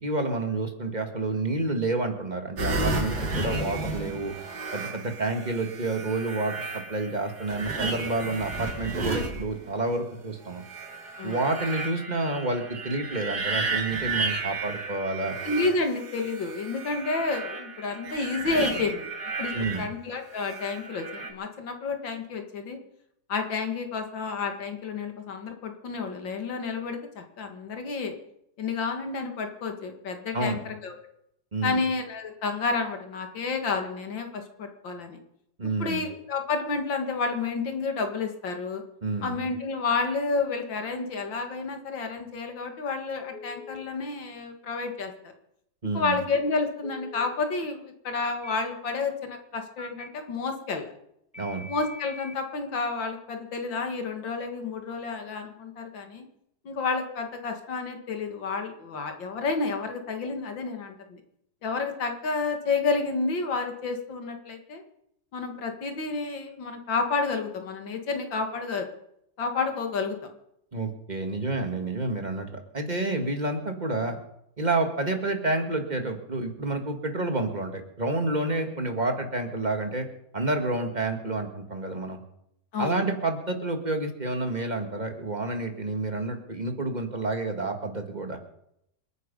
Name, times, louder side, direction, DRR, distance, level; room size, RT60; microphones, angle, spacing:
voice 1, 0.0-4.3 4.7-10.6 11.2-15.4 19.5-19.9 30.3-30.6 31.5-31.8 35.6-36.0 39.0-39.4 45.8-46.2 51.4-51.7 70.7-74.2 74.6-80.1 80.3-82.2 82.8-88.4, right 2 dB, 25° right, 5 dB, 1.9 m, -29 dB
sound 1, 2.6-10.0 10.5-19.9 20.3-21.3, right 3 dB, 60° right, 2.8 m, -33 dB
voice 2, 15.4-19.1 19.4-22.8 23.3-28.2 28.6-31.0 31.6-35.2 35.8-38.8 39.2-45.1 45.9-50.9 51.7-56.3 56.6-61.2 61.6-64.8 65.3-68.9 69.4-70.3 82.7-83.0, left 4 dB, 85° left, 5 dB, 2.7 m, -30 dB
Telephone, 43.3-43.8 46.8-47.3 48.2-48.5 49.8-50.1 51.3-52.4, left 3 dB, 5° left, 1.0 m, -43 dB
27.5 x 9.4 x 5.4 m, 0.78 s
omnidirectional pair, 2.0 m